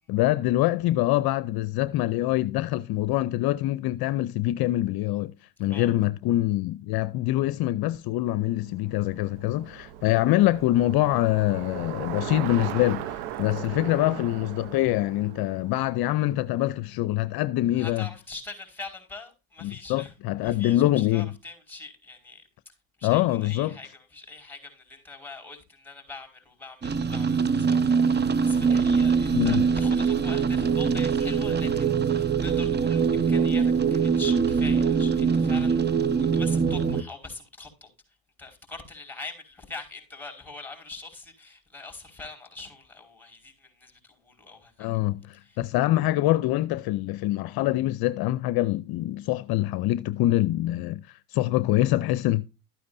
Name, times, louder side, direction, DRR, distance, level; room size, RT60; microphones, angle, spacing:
voice 1, 0.1-5.3 5.6-18.1 19.6-21.3 23.0-23.7 29.3-29.6 44.8-52.4, left 15 dB, 60° left, 0.7 m, -25 dB
Bicycle, 8.4-16.7, right 12 dB, 75° right, 0.9 m, -38 dB
voice 2, 17.7-35.8 36.2-37.9 38.4-45.0 45.3-45.7, left 3 dB, 5° left, 5.2 m, -43 dB
sound 1, 26.8-37.0, right 6 dB, 25° right, 0.8 m, -23 dB
13.0 x 9.5 x 2.6 m
supercardioid pair, 85°, 43 cm